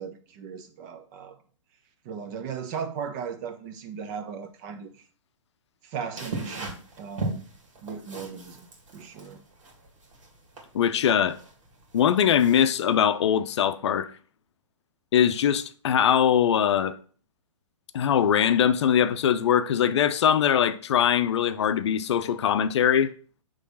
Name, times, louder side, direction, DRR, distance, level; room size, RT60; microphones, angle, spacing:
voice 1, 0.0-1.4 2.0-5.0 5.8-7.4 7.8-9.4, right 7 dB, 35° right, 1.0 m, -37 dB
sound 1, 6.2-12.9, right 2 dB, 70° right, 2.0 m, -38 dB
voice 2, 10.7-11.4 11.9-14.1 15.1-17.0 17.9-23.1, left 9 dB, 60° left, 0.6 m, -22 dB
6.4 x 3.2 x 5.4 m
figure-of-eight pair, 120°, 16 cm